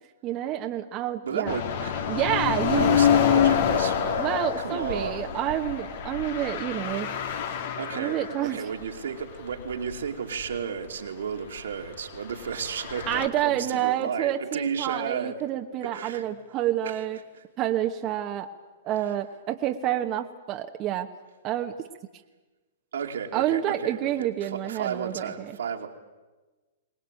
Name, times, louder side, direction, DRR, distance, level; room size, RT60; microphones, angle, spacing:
voice 1, 0.2-1.6 2.1-2.9 4.2-7.2 8.0-8.6 13.1-17.2 17.6-18.5 18.8-21.1 21.4-21.7 23.3-25.5, right 12 dB, 35° right, 5 dB, 1.2 m, -28 dB
voice 2, 1.2-2.2 2.6-5.4 7.8-15.4 15.9-16.3 16.8-17.0 17.3-17.4 22.9-25.9, right 7 dB, 80° right, 3 dB, 2.7 m, -33 dB
sound 1, 1.4-8.5 8.8-8.9 9.5-10.0 10.4-10.5 12.5-13.3, left 8 dB, 60° left, 2.2 m, -26 dB
23.0 x 19.5 x 9.1 m, 1.2 s
hypercardioid pair, 125°, 0 cm